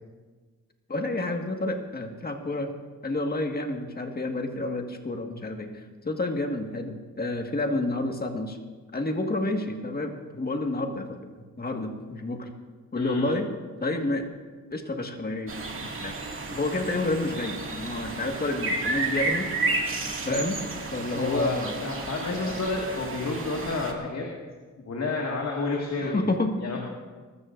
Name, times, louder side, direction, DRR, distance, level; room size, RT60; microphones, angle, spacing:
voice 1, 0.9-2.7 3.0-8.6 8.9-11.3 11.6-12.5 12.9-13.5 13.8-14.2 14.7-16.1 16.5-19.5 20.2-20.6 20.9-21.9 22.2-22.6 23.7-23.8 26.0-26.5, left 2 dB, 30° left, 3 dB, 1.8 m, -29 dB
voice 2, 12.9-13.3 21.1-21.6 21.8-24.3 24.8-26.3 26.6-26.8, left 3 dB, 55° left, -1 dB, 2.0 m, -30 dB
sound 1, 15.5-23.9, right 3 dB, 40° right, 2.2 m, -32 dB
22.5 x 13.5 x 2.6 m, 1.4 s
cardioid pair, 85°, 31 cm